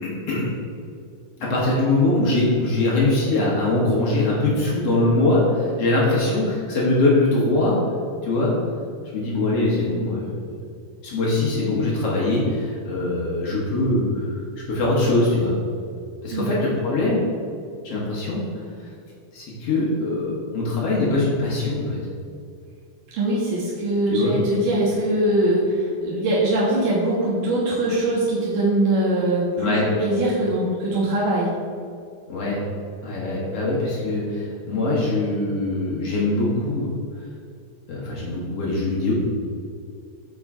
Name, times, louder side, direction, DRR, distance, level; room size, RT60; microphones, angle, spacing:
voice 1, 0.0-0.5 1.4-7.8 8.2-8.5 9.1-10.4 11.0-14.4 14.7-15.6 16.2-17.2 17.8-18.4 19.3-22.0 24.1-24.3 29.6-29.9 32.3-32.6 33.0-36.9 37.9-39.1, left 2 dB, 55° left, -5 dB, 2.0 m, -22 dB
voice 2, 23.2-31.5, right 1 dB, 75° right, -7 dB, 2.8 m, -22 dB
7.3 x 4.8 x 4.8 m, 2.3 s
omnidirectional pair, 3.7 m